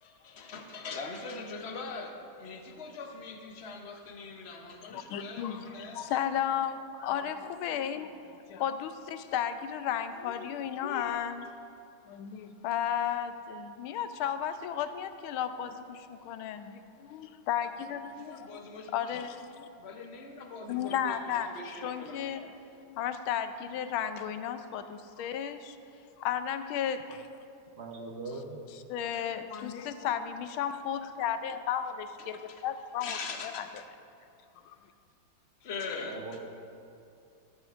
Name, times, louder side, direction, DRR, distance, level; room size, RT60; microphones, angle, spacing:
voice 1, 0.0-6.1 18.2-19.2 19.8-22.5 29.1-29.2 29.5-29.6 32.3-32.6 33.0-33.7 35.6-36.4, left 4 dB, 60° left, 3 dB, 0.7 m, -42 dB
voice 2, 4.9-5.7 5.9-11.5 12.1-18.5 18.9-19.7 20.7-21.5 21.8-22.4 22.9-25.8 26.2-27.3 28.7-33.2 33.4-33.7 34.7-34.8, left 9 dB, 85° left, 9 dB, 1.5 m, -34 dB
voice 3, 27.8-28.6 36.0-36.4, right 3 dB, 50° right, 2 dB, 0.8 m, -40 dB
14.0 x 14.0 x 2.5 m, 2.6 s
omnidirectional pair, 2.2 m